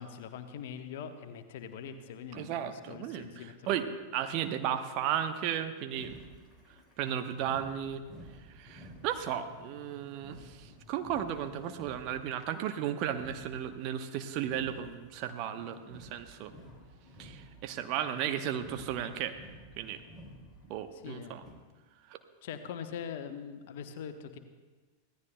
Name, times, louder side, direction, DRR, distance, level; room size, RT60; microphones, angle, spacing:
voice 1, 0.0-3.9 20.9-21.3 22.4-24.4, left 7 dB, 55° left, 8 dB, 1.1 m, -43 dB
voice 2, 2.3-3.9 4.1-6.2 7.0-8.0 8.5-16.5 17.2-19.3 19.8-20.0 20.7-21.4 22.1-22.2, right 10 dB, 40° right, 8 dB, 0.9 m, -35 dB
sound 1, 5.9-21.5, equal, 10° right, 3.5 m, -53 dB
24.5 x 17.0 x 2.3 m, 1.3 s
figure-of-eight pair, 90°, 0 cm